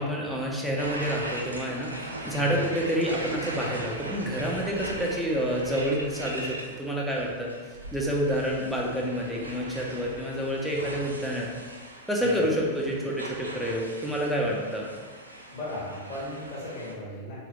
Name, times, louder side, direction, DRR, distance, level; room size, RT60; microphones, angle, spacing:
voice 1, 0.0-7.5 7.9-11.5 12.1-14.9, equal, ahead, -3 dB, 0.6 m, -28 dB
sound 1, 0.8-16.9, right 1 dB, 80° right, 0.4 m, -40 dB
voice 2, 15.5-17.5, left 1 dB, 40° left, -7 dB, 1.2 m, -37 dB
3.6 x 3.2 x 3.0 m, 1.5 s
figure-of-eight pair, 90°, 0 cm